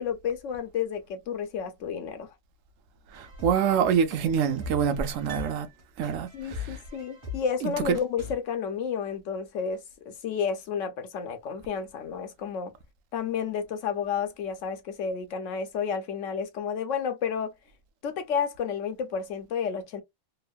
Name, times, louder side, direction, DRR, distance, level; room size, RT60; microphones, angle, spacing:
voice 1, 0.0-2.3 6.3-12.7 13.1-17.5 18.0-20.0, left 7 dB, 75° left, 1.0 m, -31 dB
sound 1, 3.1-8.3, left 5 dB, 25° right, 1.0 m, -40 dB
voice 2, 3.1-5.7 6.0-6.8 7.6-8.0, right 7 dB, 85° right, 1.0 m, -26 dB
Piano, 5.3-6.5 6.8-6.9, right 7 dB, 50° right, 0.7 m, -47 dB
3.0 x 2.1 x 2.4 m
omnidirectional pair, 1.3 m